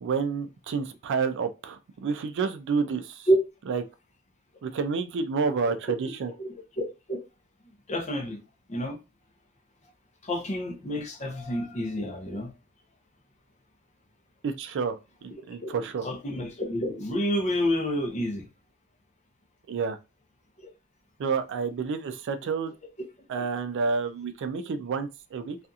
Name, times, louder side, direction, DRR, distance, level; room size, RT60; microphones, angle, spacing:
voice 1, 0.0-3.3 3.7-3.8 4.6-6.3 14.4-16.1 19.7-20.0 21.2-22.7 23.3-25.6, right 5 dB, 55° right, 0.3 m, -29 dB
voice 2, 6.8-7.2 7.6-8.4 8.7-9.0 10.2-12.5 15.6-15.7 16.0-18.5 20.6-20.7, equal, 30° left, 0.6 m, -28 dB
2.7 x 2.4 x 2.3 m
head